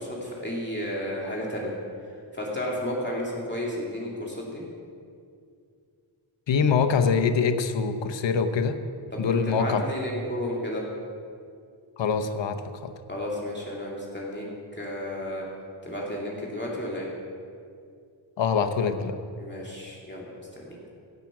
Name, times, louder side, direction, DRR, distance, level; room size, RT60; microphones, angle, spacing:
voice 1, 0.0-1.8 2.3-4.6 9.1-10.8 13.1-14.4 14.7-15.4 15.8-17.1 19.4-20.9, left 1 dB, 20° left, -4 dB, 2.6 m, -32 dB
voice 2, 6.5-8.8 9.2-9.8 12.0-12.9 18.4-19.2, left 5 dB, 60° left, 7 dB, 0.9 m, -24 dB
16.0 x 6.0 x 6.1 m, 2.3 s
cardioid pair, 65°, 49 cm